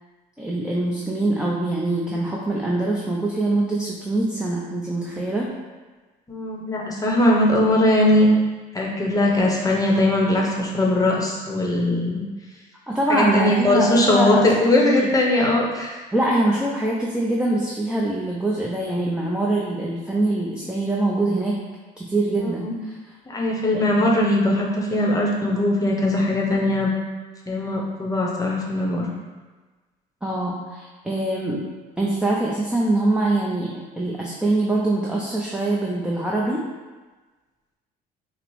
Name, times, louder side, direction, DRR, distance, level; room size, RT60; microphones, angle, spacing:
voice 1, 0.4-5.5 12.9-14.5 14.8-15.1 16.1-21.6 22.0-23.1 23.7-24.1 30.2-31.7 32.0-36.6, right 2 dB, 5° right, -4 dB, 0.5 m, -24 dB
voice 2, 6.3-8.3 8.7-12.2 13.1-15.9 22.6-22.7 23.3-26.9 27.5-29.1, left 1 dB, 20° left, -2 dB, 0.8 m, -20 dB
5.7 x 2.0 x 3.1 m, 1.3 s
cardioid pair, 110°, 17 cm